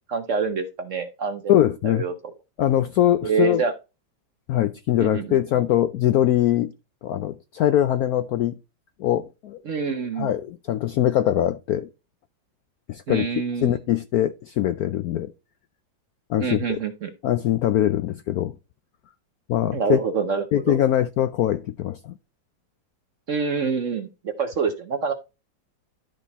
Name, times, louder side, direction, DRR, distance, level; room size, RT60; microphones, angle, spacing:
voice 1, 0.1-1.6 1.8-2.1 3.2-3.7 5.0-5.4 9.7-10.3 13.1-13.8 16.4-17.1 19.7-20.8 23.3-25.1, right 5 dB, 55° right, 0.9 m, -26 dB
voice 2, 1.5-2.0 2.6-3.6 4.5-6.7 7.0-8.5 9.0-9.6 10.2-11.9 12.9-13.3 13.6-15.3 16.3-16.8 17.2-18.5 19.5-20.0 20.5-22.1, left 12 dB, 75° left, 0.8 m, -22 dB
12.0 x 4.3 x 4.0 m
omnidirectional pair, 2.1 m